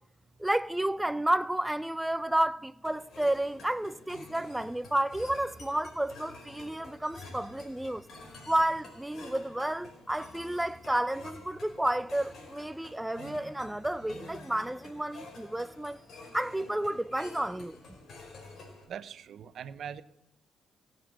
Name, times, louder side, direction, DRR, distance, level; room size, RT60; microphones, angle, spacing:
voice 1, 0.4-8.0 8.5-16.0 16.3-17.8, right 1 dB, 5° right, 0.5 m, -31 dB
sound 1, 2.8-18.8, left 2 dB, 60° left, 4.5 m, -49 dB
voice 2, 18.9-20.0, right 8 dB, 65° right, 0.8 m, -41 dB
18.0 x 7.9 x 7.6 m
cardioid pair, 90°, 0 cm